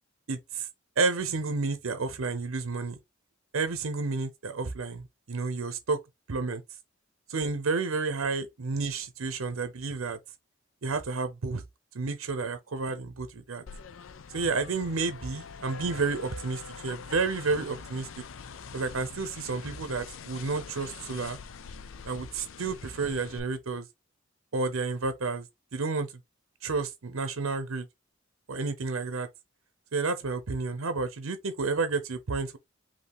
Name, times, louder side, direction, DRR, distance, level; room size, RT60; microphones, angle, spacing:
voice 1, 0.3-0.7 1.0-3.0 3.5-6.0 6.3-6.6 7.3-10.2 10.8-11.6 11.9-13.6 14.3-18.1 18.7-21.4 22.0-23.8 24.5-25.5 25.7-26.1 26.6-27.9 28.5-29.3 29.9-32.6, right 4 dB, 80° right, 0.7 m, -31 dB
sound 1, 13.7-23.4, left 6 dB, 70° left, 0.5 m, -44 dB
5.3 x 2.7 x 3.0 m
head